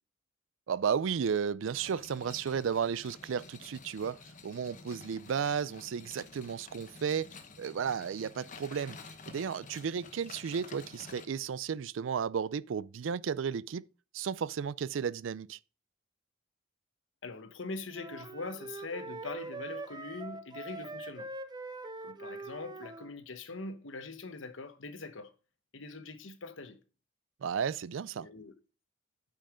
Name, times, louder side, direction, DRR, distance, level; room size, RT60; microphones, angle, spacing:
voice 1, 0.7-7.3 7.6-13.9 14.1-15.6 27.4-28.3, right 7 dB, 80° right, 0.4 m, -33 dB
sound 1, 1.7-11.2, left 4 dB, 40° left, 1.1 m, -51 dB
voice 2, 17.2-21.3 22.0-25.3 25.7-26.8 28.2-28.5, left 3 dB, 75° left, 1.1 m, -42 dB
sound 2, 17.9-23.1, right 3 dB, 20° right, 0.7 m, -43 dB
9.0 x 5.5 x 5.0 m
head